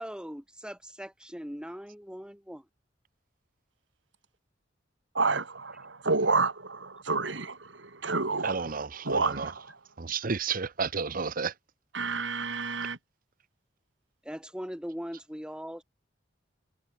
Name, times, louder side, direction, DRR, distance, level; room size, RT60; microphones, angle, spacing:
voice 1, 0.0-2.6 14.2-15.8, equal, 5° right, 4.9 m, -40 dB
voice 2, 5.1-8.6 9.1-9.7 11.9-13.0, right 3 dB, 80° right, 2.7 m, -29 dB
voice 3, 8.4-9.5 10.0-11.5, right 5 dB, 50° right, 0.9 m, -31 dB
head